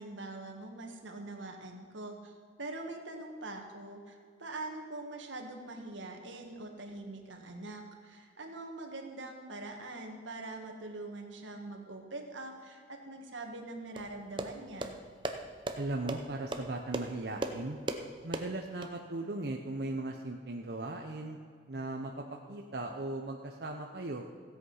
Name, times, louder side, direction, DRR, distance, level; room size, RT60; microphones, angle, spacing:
voice 1, 0.0-2.3 2.6-15.0, right 2 dB, 80° right, 3 dB, 1.8 m, -43 dB
sound 1, 14.0-18.9, right 2 dB, 25° right, 0.7 m, -39 dB
voice 2, 15.8-17.8 18.2-21.4 21.7-24.2, right 2 dB, 55° right, 1 dB, 0.8 m, -38 dB
16.0 x 8.1 x 5.6 m, 2.1 s
head